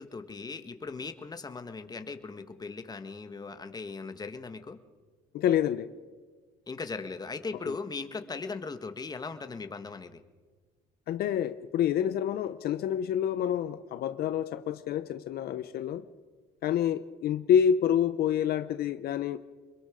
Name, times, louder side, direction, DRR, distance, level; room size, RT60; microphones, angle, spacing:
voice 1, 0.0-4.8 6.7-10.2, left 4 dB, 25° left, 8 dB, 1.6 m, -38 dB
voice 2, 5.3-5.9 11.1-16.0 16.6-19.4, left 9 dB, 65° left, 12 dB, 0.8 m, -27 dB
25.5 x 22.0 x 5.1 m, 1.4 s
cardioid pair, 110°, 17 cm